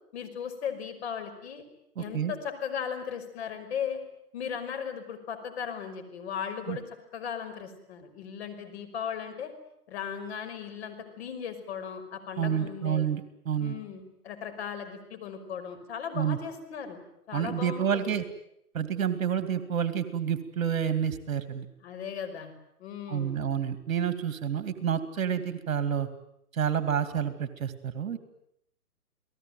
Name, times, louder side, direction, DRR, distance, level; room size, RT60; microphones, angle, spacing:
voice 1, 0.1-1.6 2.0-4.0 4.3-9.5 9.9-13.0 13.6-18.2 21.8-22.5 22.8-23.5, left 7 dB, 45° left, 6 dB, 5.6 m, -37 dB
voice 2, 2.0-2.3 6.7-6.8 12.4-13.7 16.1-16.4 17.3-18.2 18.7-21.7 23.1-26.1 26.5-28.2, right 8 dB, 60° right, 11 dB, 2.5 m, -29 dB
29.5 x 19.0 x 9.4 m, 0.78 s
hypercardioid pair, 145°, 45 cm